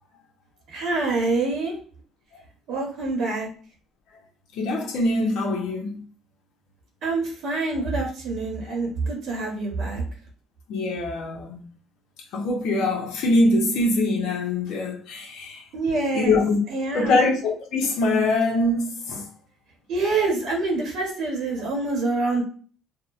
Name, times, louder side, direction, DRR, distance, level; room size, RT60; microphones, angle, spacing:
voice 1, 0.7-1.8 2.7-3.5 7.0-10.0 15.7-16.4 16.7-17.3 19.9-22.4, right 3 dB, 65° right, 0.9 m, -26 dB
voice 2, 4.5-6.0 8.7-8.8 10.7-11.6 12.3-15.6 16.1-16.6 16.9-19.3, left 2 dB, 75° left, 0.7 m, -23 dB
2.8 x 2.1 x 2.4 m
cardioid pair, 115°, 0 cm